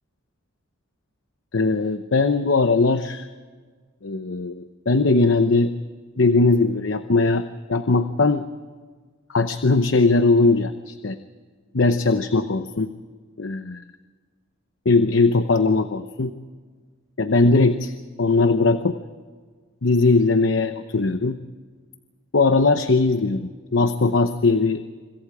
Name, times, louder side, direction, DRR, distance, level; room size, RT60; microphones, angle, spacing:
voice 1, 1.5-3.3 4.0-5.7 6.2-7.4 7.7-8.4 9.3-11.1 11.7-12.9 13.4-13.8 14.8-16.3 17.2-17.9 18.2-19.0 19.8-21.4 22.3-24.8, left 3 dB, 60° left, 9 dB, 0.8 m, -19 dB
27.0 x 25.5 x 4.9 m, 1.5 s
head